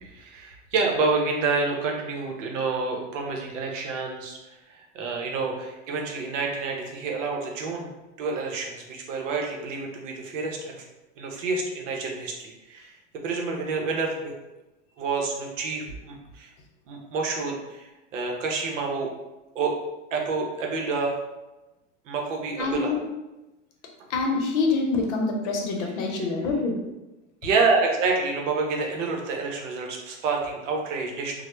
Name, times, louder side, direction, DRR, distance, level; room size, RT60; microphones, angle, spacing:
voice 1, 0.0-4.4 4.7-7.9 8.2-10.8 11.2-12.9 13.2-14.3 15.0-16.5 16.9-17.8 18.1-19.1 19.5-19.7 20.1-21.2 22.1-23.0 25.8-26.3 27.4-31.4, right 4 dB, 90° right, 0 dB, 0.7 m, -28 dB
voice 2, 22.6-23.0 24.1-26.8, left 3 dB, 70° left, 2 dB, 0.7 m, -25 dB
2.1 x 2.1 x 3.0 m, 1.0 s
supercardioid pair, 115°, 36 cm